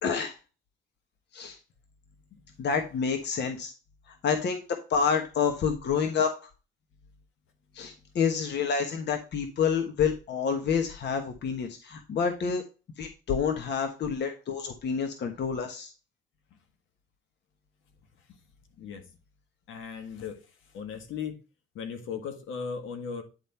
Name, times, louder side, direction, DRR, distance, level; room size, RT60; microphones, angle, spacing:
voice 1, 0.0-0.3 1.3-1.6 2.6-3.7 4.2-6.3 7.7-12.6 13.0-15.9, left 6 dB, 60° left, 1.2 m, -28 dB
voice 2, 19.7-20.4 20.7-21.4 21.7-23.2, left 6 dB, 80° left, 1.7 m, -37 dB
9.9 x 3.7 x 4.2 m
cardioid pair, 90°, 20 cm